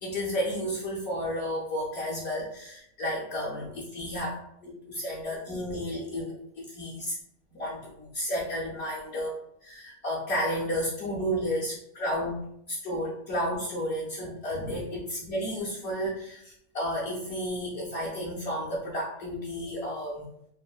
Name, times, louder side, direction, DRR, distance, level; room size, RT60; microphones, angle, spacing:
voice 1, 0.0-7.2 7.5-20.2, equal, 55° left, -6 dB, 0.8 m, -32 dB
3.4 x 2.1 x 2.3 m, 0.74 s
omnidirectional pair, 1.5 m